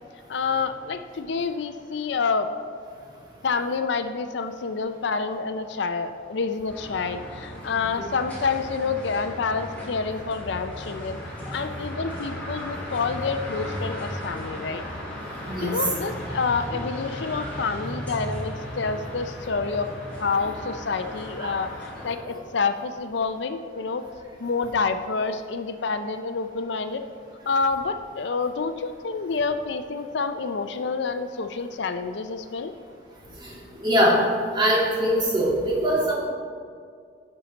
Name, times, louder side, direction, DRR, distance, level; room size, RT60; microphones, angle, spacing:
voice 1, 0.3-2.5 3.4-11.2 11.5-14.8 15.6-19.9 20.2-21.7 22.0-24.0 24.4-27.0 27.5-32.7, left 4 dB, 65° left, 9 dB, 0.5 m, -28 dB
sound 1, 6.7-22.1, equal, 10° left, 2.9 m, -36 dB
voice 2, 33.8-34.2 34.5-36.1, equal, 25° right, -4 dB, 2.1 m, -22 dB
16.0 x 5.8 x 4.1 m, 2.2 s
head